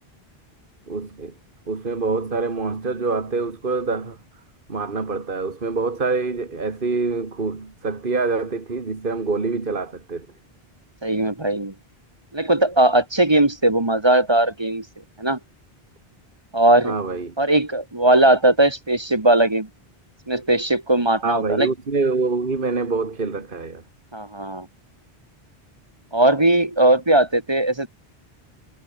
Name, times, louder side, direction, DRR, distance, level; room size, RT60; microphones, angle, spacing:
voice 1, 0.9-1.3 1.7-4.2 4.7-10.3 16.8-17.3 21.2-23.8, right 4 dB, 55° right, 2.1 m, -25 dB
voice 2, 11.0-11.7 12.3-14.8 15.2-15.4 16.5-17.0 17.4-19.7 20.3-21.7 24.1-24.7 26.1-27.9, right 1 dB, 25° right, 1.7 m, -19 dB
omnidirectional pair, 1.0 m